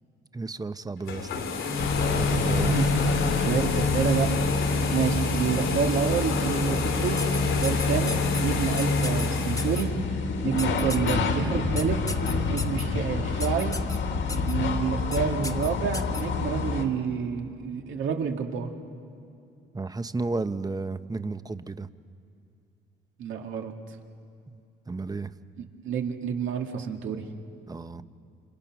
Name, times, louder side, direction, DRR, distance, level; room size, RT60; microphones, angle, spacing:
voice 1, 0.3-1.3 2.1-2.7 19.7-21.9 24.5-24.6 24.9-25.3 27.7-28.0, right 3 dB, 20° right, 12 dB, 0.9 m, -32 dB
sound 1, 1.0-9.9, left 3 dB, 90° left, 3.3 m, -27 dB
sound 2, 1.8-16.9, left 4 dB, 70° left, 2.3 m, -29 dB
voice 2, 2.3-3.1 3.4-4.3 4.6-9.9 10.4-12.0 12.5-13.7 14.3-18.7 23.2-23.7 25.6-27.2, right 6 dB, 80° right, 3 dB, 2.2 m, -29 dB
sound 3, 7.2-8.4 8.8-9.3 9.6-9.8 10.6-11.1 11.8-12.8 13.4-14.0 14.3-14.5 15.1-15.2 15.4-16.2, left 2 dB, 15° left, 1.2 m, -34 dB
28.5 x 26.5 x 6.1 m, 2.5 s
cardioid pair, 90°, 20 cm